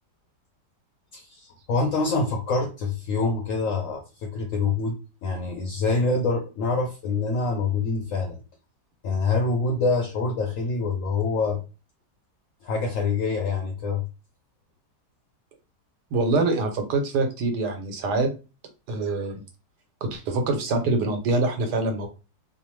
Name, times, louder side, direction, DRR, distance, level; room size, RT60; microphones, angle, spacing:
voice 1, 1.1-4.9 5.2-8.4 9.0-11.6 12.6-14.0, left 3 dB, 70° left, 1 dB, 0.7 m, -25 dB
voice 2, 16.1-18.3 18.9-19.4 20.0-22.1, right 3 dB, 75° right, 4 dB, 1.3 m, -24 dB
2.8 x 2.1 x 3.0 m, 0.31 s
omnidirectional pair, 1.8 m